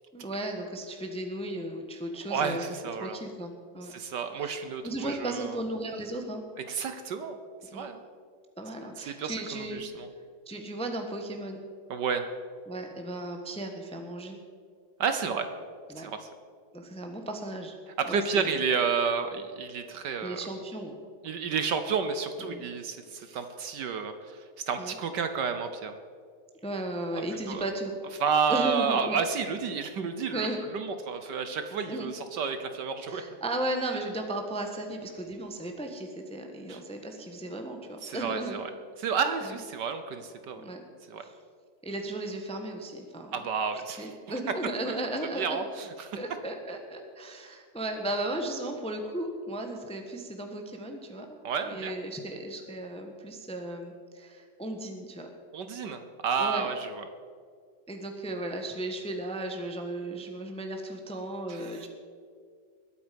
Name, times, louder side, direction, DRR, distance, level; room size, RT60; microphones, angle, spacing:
voice 1, 0.1-2.7 3.0-3.9 4.3-4.5 4.8-6.4 7.6-7.9 8.6-9.8 10.5-11.6 12.7-14.4 15.9-16.1 16.7-17.7 18.0-18.5 20.2-21.0 22.4-22.6 24.8-25.0 26.6-27.9 28.5-29.2 30.3-30.6 31.9-32.1 33.1-38.6 39.4-39.5 40.6-40.8 41.2-41.3 41.8-45.6 46.2-51.4 51.6-55.3 56.4-56.7 57.9-61.9, right 1 dB, 5° left, 4 dB, 0.9 m, -35 dB
voice 2, 2.3-3.2 3.9-5.6 6.6-7.4 7.7-8.0 9.1-10.1 11.9-12.3 15.0-15.5 16.0-16.3 18.0-20.4 21.2-24.4 24.7-25.9 27.1-27.2 27.5-27.6 28.2-30.5 30.7-33.2 36.7-36.8 38.0-38.7 39.0-40.6 41.1-41.2 43.3-44.1 44.9-45.0 45.3-46.2 51.4-51.9 55.5-57.0 61.5-61.9, right 6 dB, 65° right, 8 dB, 1.4 m, -31 dB
21.0 x 8.4 x 5.3 m, 2.1 s
omnidirectional pair, 2.2 m